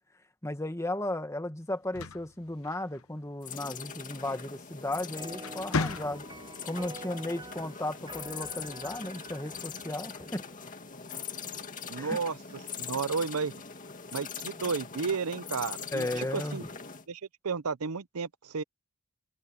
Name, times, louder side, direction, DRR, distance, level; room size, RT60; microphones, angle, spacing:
voice 1, 0.4-6.3 6.6-10.4 12.0-12.2 15.9-16.7, left 1 dB, 15° left, 1.6 m, -35 dB
sound 1, 1.7-3.3 4.7-5.0 5.4-6.6, left 3 dB, 70° left, 1.0 m, -35 dB
sound 2, 3.4-17.1, left 6 dB, 35° left, 2.2 m, -42 dB
sound 3, 5.2-10.9, right 2 dB, 20° right, 7.4 m, -48 dB
voice 2, 11.9-12.4 12.8-13.5 14.1-16.6 17.1-18.6, right 5 dB, 90° right, 0.7 m, -32 dB
head